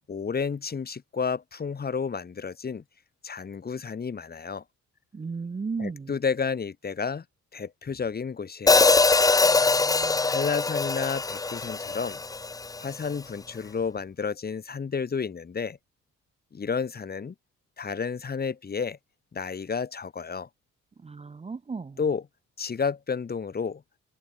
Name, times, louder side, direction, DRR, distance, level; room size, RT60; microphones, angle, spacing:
voice 1, 0.1-2.8 3.2-4.6 5.8-7.2 7.5-9.0 10.3-12.2 12.8-15.8 16.5-17.3 17.8-19.0 19.3-20.5 22.0-22.2 22.6-23.8, left 5 dB, 30° left, 1.2 m, -31 dB
voice 2, 5.1-6.1 9.4-10.4 21.0-22.0, right 4 dB, 20° right, 0.7 m, -36 dB
Hi-hat, 8.7-12.9, left 3 dB, 10° left, 0.4 m, -22 dB
cardioid pair, 90°, 30 cm